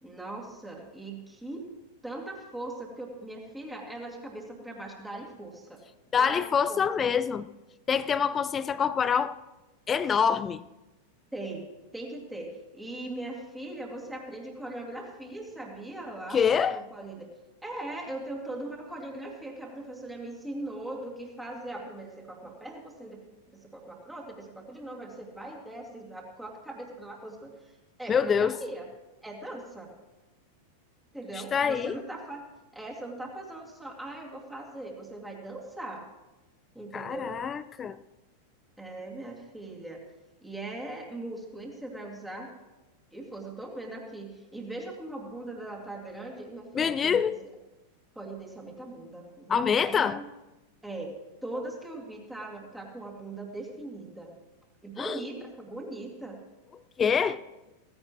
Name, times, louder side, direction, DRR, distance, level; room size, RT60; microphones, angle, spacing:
voice 1, 0.0-1.6 2.0-5.8 6.2-7.1 11.3-11.6 11.9-16.4 16.7-17.3 17.6-23.2 23.5-28.9 29.2-29.9 31.1-32.5 32.7-36.1 36.7-37.4 38.8-40.0 40.4-42.5 43.1-47.5 48.2-50.3 50.8-51.2 51.4-54.3 54.8-56.4, right 2 dB, 5° right, 2.5 m, -40 dB
voice 2, 6.1-7.5 7.9-9.4 9.9-10.6 16.3-16.8 28.1-28.6 31.3-31.9 36.9-38.0 46.7-47.4 49.5-50.2 55.0-55.2 57.0-57.4, left 7 dB, 20° left, 0.4 m, -25 dB
16.5 x 15.0 x 3.1 m
figure-of-eight pair, 90°, 0 cm